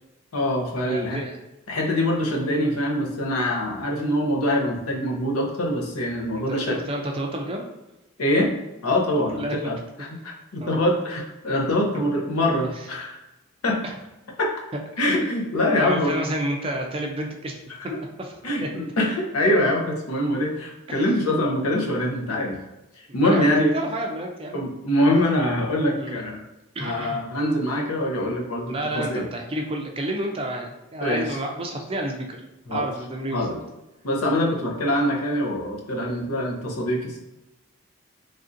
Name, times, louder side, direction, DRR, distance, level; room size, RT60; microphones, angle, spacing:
voice 1, 0.3-1.2 1.7-6.8 8.2-8.5 8.8-13.2 13.6-13.8 14.4-14.5 15.0-16.2 17.9-18.0 18.4-22.6 23.0-23.7 24.5-26.4 26.8-29.3 31.0-31.3 32.7-32.9 33.3-33.6 34.0-37.2, left 1 dB, 90° left, 0 dB, 0.7 m, -24 dB
voice 2, 0.8-1.4 6.5-7.6 9.4-9.6 10.6-10.8 13.8-13.9 15.0-15.1 15.8-17.6 18.2-18.4 20.9-21.0 23.1-23.4 23.7-24.7 26.0-26.2 26.7-27.2 28.7-32.4 32.7-33.6, right 1 dB, 25° right, 1 dB, 0.3 m, -30 dB
3.3 x 2.6 x 2.5 m, 1.0 s
head